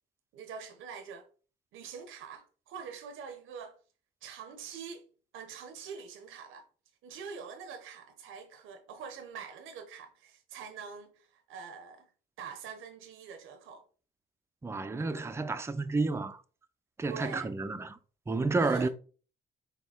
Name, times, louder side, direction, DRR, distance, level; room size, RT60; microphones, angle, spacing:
voice 1, 0.3-1.3 1.7-3.8 4.2-5.1 5.3-6.7 7.0-12.1 12.4-13.8 17.0-17.5 18.6-18.9, right 6 dB, 85° right, 0.7 m, -45 dB
voice 2, 14.6-16.4 17.0-18.0 18.3-18.9, right 3 dB, 15° right, 0.4 m, -30 dB
4.3 x 2.9 x 4.2 m
cardioid pair, 90°, 20 cm